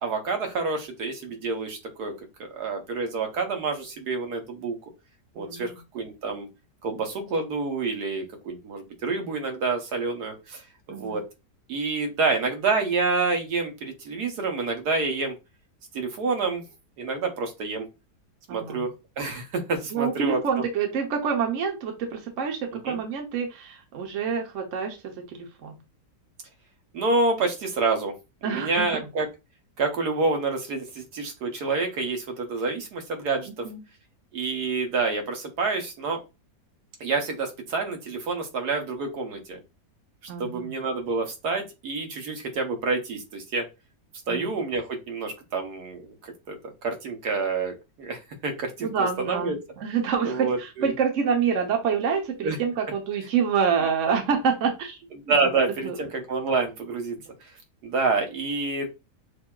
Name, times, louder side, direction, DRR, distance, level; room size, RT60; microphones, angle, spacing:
voice 1, 0.0-2.1 2.4-4.8 5.3-6.5 6.8-10.6 10.9-11.3 11.7-15.3 15.9-16.6 17.0-17.8 18.5-20.4 22.8-23.0 26.9-28.1 28.4-29.3 29.8-33.6 34.3-36.2 37.0-39.6 40.4-43.7 44.3-49.6 50.2-50.9 52.4-52.6 55.3-57.2 57.8-58.9, right 3 dB, 70° right, 4 dB, 1.5 m, -28 dB
voice 2, 5.4-5.8 10.9-11.2 18.5-18.9 19.9-25.0 25.3-25.7 28.4-29.1 33.6-33.8 40.3-40.7 44.3-44.5 48.8-55.0 55.2-55.5 55.8-56.0, right 6 dB, 55° right, 3 dB, 1.1 m, -27 dB
6.6 x 2.7 x 2.3 m, 0.25 s
omnidirectional pair, 1.8 m